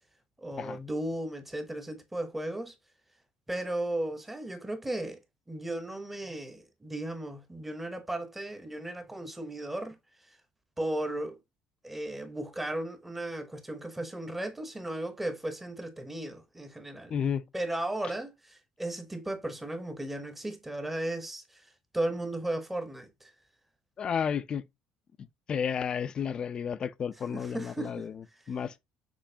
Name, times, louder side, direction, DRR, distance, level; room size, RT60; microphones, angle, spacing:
voice 1, 0.4-2.7 3.5-5.2 5.5-10.0 10.8-11.4 11.8-17.1 17.5-21.6 21.9-23.3 27.3-28.1, right 1 dB, 5° right, 0.8 m, -35 dB
voice 2, 17.1-17.4 24.0-24.6 25.5-28.8, left 7 dB, 35° left, 0.4 m, -32 dB
6.2 x 3.1 x 2.7 m
cardioid pair, 135°, 3 cm